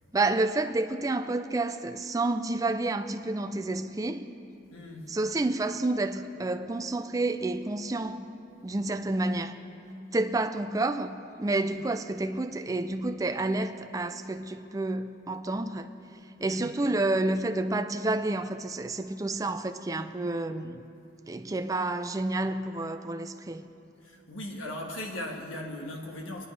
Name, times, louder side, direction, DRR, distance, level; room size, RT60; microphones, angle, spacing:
voice 1, 0.1-4.3 5.1-8.3 8.6-9.5 10.1-15.9 16.4-20.8 21.3-23.6, right 2 dB, 15° right, 0.4 m, -29 dB
voice 2, 4.7-5.2 11.6-11.8 16.4-16.7 24.0-26.5, left 1 dB, 90° left, 1.6 m, -38 dB
25.0 x 9.6 x 3.3 m
head